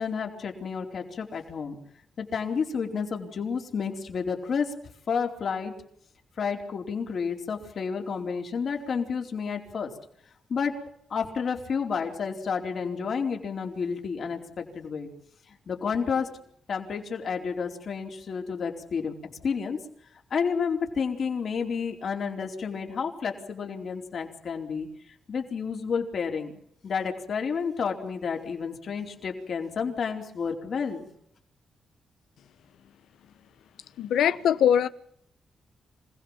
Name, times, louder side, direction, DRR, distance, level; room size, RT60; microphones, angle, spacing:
voice 1, 0.0-1.8 2.2-4.7 5.1-5.7 6.4-9.9 10.5-10.7 11.1-15.1 15.5-16.3 16.7-19.8 20.3-24.9 25.3-26.5 26.8-31.1, left 6 dB, 65° left, 4.3 m, -30 dB
voice 2, 34.0-34.9, left 9 dB, 85° left, 1.1 m, -22 dB
26.5 x 16.5 x 7.4 m
cardioid pair, 70°, 0 cm